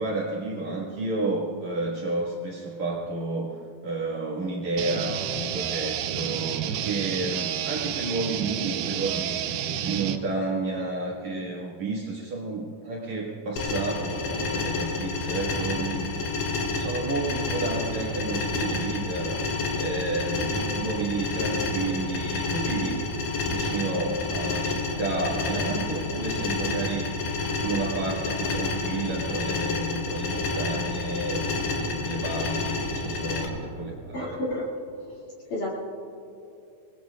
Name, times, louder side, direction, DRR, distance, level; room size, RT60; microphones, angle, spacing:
voice 1, 0.0-3.6 3.8-16.2 16.8-23.0 23.4-27.1 27.6-34.4, right 3 dB, 55° right, -5 dB, 2.2 m, -31 dB
sound 1, 4.8-10.2, right 9 dB, 85° right, 2.2 m, -30 dB
sound 2, 13.6-33.5, left 3 dB, 75° left, 4.2 m, -29 dB
voice 2, 34.1-34.7 35.5-35.8, left 1 dB, 50° left, -7 dB, 3.5 m, -30 dB
27.0 x 21.0 x 2.4 m, 2.6 s
omnidirectional pair, 5.4 m